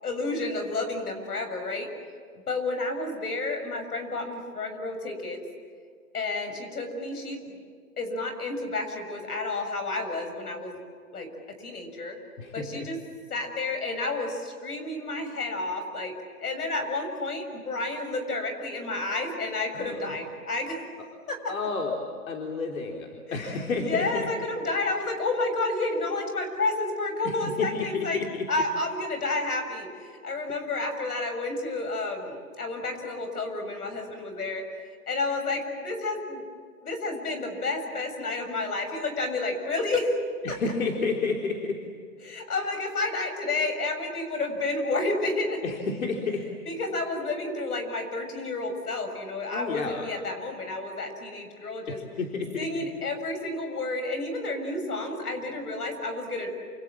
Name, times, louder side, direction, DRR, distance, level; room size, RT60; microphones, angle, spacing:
voice 1, 0.0-1.9 2.5-5.4 6.1-7.6 8.0-10.8 11.1-11.3 11.6-12.2 12.5-13.0 13.3-16.1 16.4-20.8 21.3-21.5 23.3-28.2 28.5-34.6 35.1-36.4 36.8-40.1 40.5-40.6 42.2-45.6 46.7-52.0 52.6-56.5, left 2 dB, 90° left, 6 dB, 7.2 m, -30 dB
voice 2, 19.7-20.1 21.5-21.9 22.3-24.2 27.2-28.4 40.4-41.8 45.6-46.5 49.5-50.1 51.9-52.9, left 4 dB, 65° left, 1 dB, 3.8 m, -30 dB
28.5 x 27.5 x 7.6 m, 2.1 s
hypercardioid pair, 170°, 44 cm